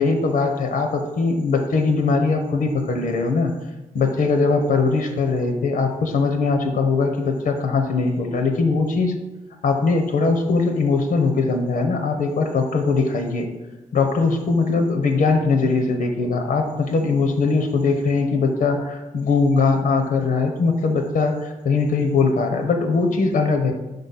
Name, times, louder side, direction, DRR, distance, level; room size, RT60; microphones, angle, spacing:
voice 1, 0.0-3.5 3.9-9.1 9.6-13.5 13.9-23.7, left 4 dB, 80° left, 4 dB, 0.8 m, -21 dB
5.1 x 3.9 x 5.6 m, 1.1 s
cardioid pair, 95°, 14 cm